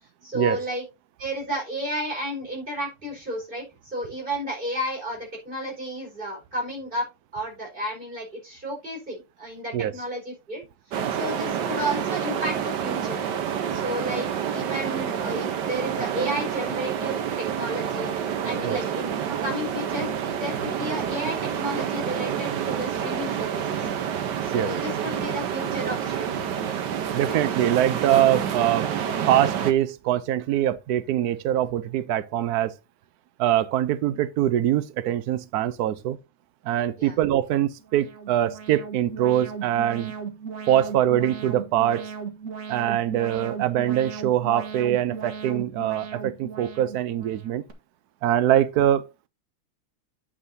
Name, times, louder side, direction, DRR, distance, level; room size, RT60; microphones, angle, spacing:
voice 1, 0.2-0.8 1.2-7.1 7.3-10.6 11.2-13.2 13.7-17.2 17.5-18.1 18.4-23.9 24.4-26.5 27.2-27.4 37.0-37.1, equal, 25° right, 5.0 m, -32 dB
sound 1, 10.9-29.7, right 8 dB, 60° right, 1.4 m, -28 dB
voice 2, 27.1-28.9 29.2-32.7 33.4-36.2 36.6-40.1 40.7-42.1 42.7-47.6 48.2-49.3, right 11 dB, 80° right, 0.8 m, -23 dB
Alarm, 37.8-47.7, right 6 dB, 40° right, 1.7 m, -37 dB
9.6 x 8.8 x 2.7 m
omnidirectional pair, 2.3 m